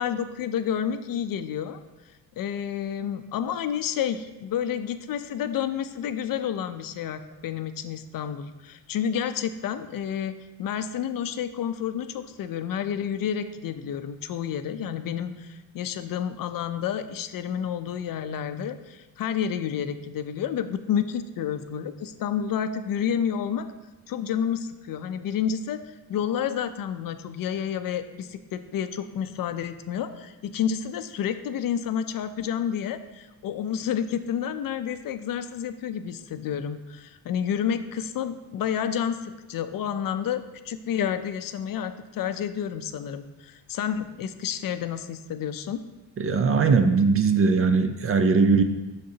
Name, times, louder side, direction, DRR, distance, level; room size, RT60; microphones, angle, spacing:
voice 1, 0.0-1.8 2.4-10.3 10.6-23.7 24.1-25.8 26.1-45.8, left 8 dB, 55° left, 10 dB, 0.5 m, -30 dB
voice 2, 46.2-48.6, right 4 dB, 35° right, 8 dB, 0.4 m, -20 dB
6.7 x 6.5 x 2.8 m, 1.1 s
cardioid pair, 110°, 41 cm